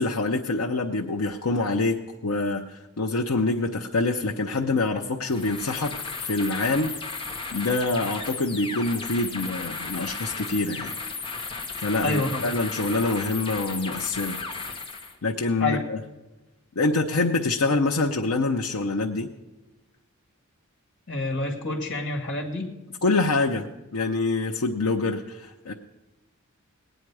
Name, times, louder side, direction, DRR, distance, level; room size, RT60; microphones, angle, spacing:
voice 1, 0.0-2.0 2.2-6.0 6.2-7.3 7.5-10.9 11.8-14.4 15.2-16.0 16.8-19.3 23.0-23.7 23.9-25.7, left 3 dB, 80° left, 1 dB, 0.7 m, -25 dB
sound 1, 5.2-15.2, left 4 dB, 25° left, 1.2 m, -35 dB
voice 2, 12.0-12.5 15.6-15.8 21.1-22.7, left 2 dB, 55° left, 1 dB, 2.1 m, -28 dB
19.5 x 9.1 x 4.8 m, 1.1 s
head